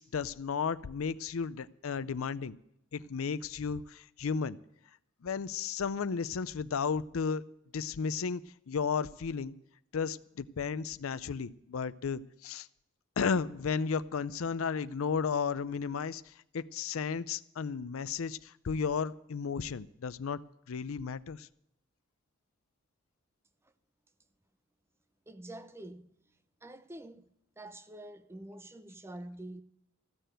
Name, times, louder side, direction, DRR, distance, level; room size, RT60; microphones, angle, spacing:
voice 1, 0.0-2.6 2.9-4.6 5.2-7.4 7.7-8.4 8.7-9.5 9.9-12.7 13.2-20.4 20.7-21.5, left 6 dB, 80° left, 0.5 m, -34 dB
voice 2, 25.3-26.1 26.6-27.3 27.6-29.6, right 1 dB, 10° right, 0.6 m, -46 dB
14.5 x 6.7 x 9.0 m
head